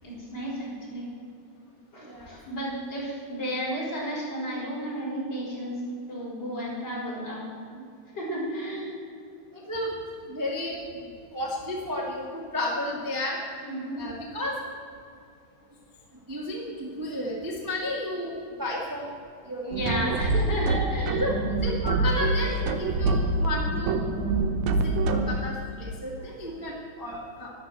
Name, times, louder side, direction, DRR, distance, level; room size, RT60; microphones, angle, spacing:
voice 1, 0.0-1.1 1.9-5.8 6.1-7.5 8.1-9.0 13.6-14.0 19.6-21.3 26.2-26.5, equal, 30° left, -5 dB, 5.2 m, -33 dB
voice 2, 10.3-12.3 12.5-13.4 14.0-14.5 16.3-18.3 18.6-19.1 19.5-19.6 20.0-20.1 21.2-21.3 21.6-24.0 24.6-27.5, left 1 dB, 10° right, -3 dB, 0.9 m, -32 dB
sound 1, 19.7-25.4, right 2 dB, 70° right, 1.9 m, -25 dB
12.0 x 11.5 x 7.6 m, 2.5 s
omnidirectional pair, 3.9 m